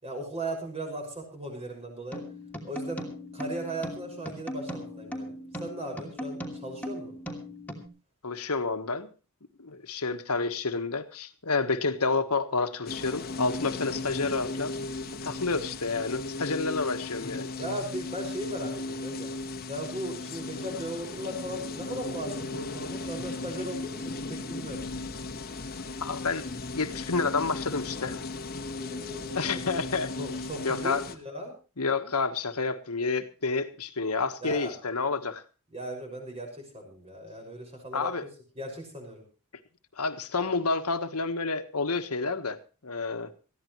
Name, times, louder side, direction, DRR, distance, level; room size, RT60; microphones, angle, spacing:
voice 1, 0.0-2.2 2.6-7.1 15.2-15.7 17.6-19.3 19.7-24.9 28.7-29.4 30.2-31.5 34.4-34.7 35.7-38.1 38.6-39.2, right 1 dB, 30° right, 2 dB, 6.0 m, -37 dB
sound 1, 2.1-7.9, equal, 5° left, 2.7 m, -38 dB
voice 2, 8.2-9.1 9.6-14.7 15.2-17.5 26.0-26.4 26.7-28.2 29.3-30.1 30.6-31.0 31.8-35.4 37.9-38.3 40.0-42.6 42.8-43.3, left 4 dB, 85° left, 8 dB, 1.5 m, -29 dB
sound 2, 12.9-31.2, left 3 dB, 45° left, 1.4 m, -36 dB
20.5 x 15.0 x 3.2 m, 0.33 s
head